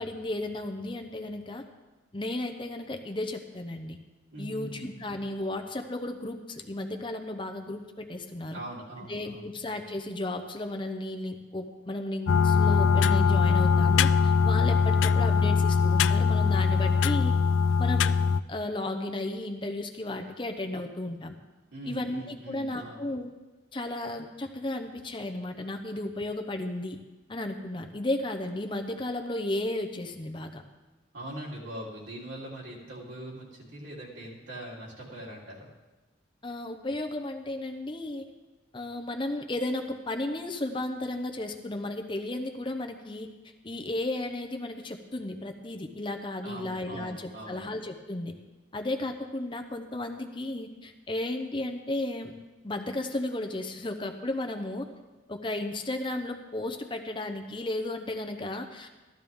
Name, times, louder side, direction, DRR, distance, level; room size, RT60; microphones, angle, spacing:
voice 1, 0.0-1.6 2.1-4.0 4.4-8.6 9.1-17.3 17.8-18.2 18.5-21.3 21.9-23.3 23.7-27.0 27.3-30.6 36.4-38.3 38.7-43.3 43.6-48.3 48.7-52.3 52.6-54.9 55.3-58.9, left 1 dB, 25° left, 5 dB, 0.7 m, -34 dB
voice 2, 4.3-5.0 8.5-9.5 21.7-23.0 31.1-35.7 46.4-47.7, right 1 dB, 80° right, -5 dB, 3.3 m, -41 dB
sound 1, 12.3-18.4, left 5 dB, 80° left, 0.3 m, -22 dB
14.0 x 12.5 x 3.5 m, 1.2 s
head